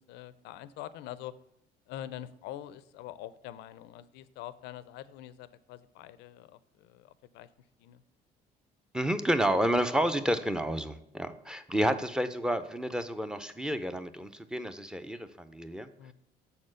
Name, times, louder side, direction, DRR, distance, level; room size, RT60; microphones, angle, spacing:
voice 1, 0.0-1.3 1.9-7.5 7.8-8.0 11.7-11.9 16.0-16.1, left 12 dB, 90° left, 16 dB, 0.4 m, -45 dB
voice 2, 8.9-16.1, equal, 5° right, 10 dB, 0.5 m, -30 dB
6.8 x 4.3 x 6.3 m, 0.83 s
cardioid pair, 110°, 17 cm